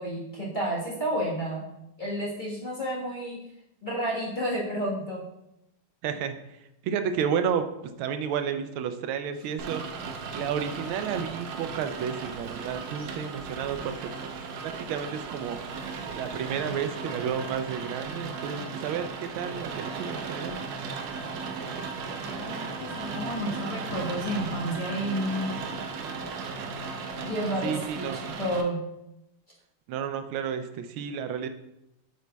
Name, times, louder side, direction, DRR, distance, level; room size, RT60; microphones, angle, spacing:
voice 1, 0.0-1.7 2.0-3.4 3.8-5.2 22.2-25.6 27.2-28.9, equal, 30° left, -6 dB, 1.2 m, -31 dB
voice 2, 6.0-6.4 6.8-9.8 10.3-13.9 14.6-15.6 16.1-20.6 27.6-28.2 29.9-31.5, right 7 dB, 90° right, 9 dB, 1.4 m, -31 dB
Rain, 9.6-28.6, right 4 dB, 70° right, 1.3 m, -36 dB
8.0 x 5.1 x 2.3 m, 0.86 s
omnidirectional pair, 2.2 m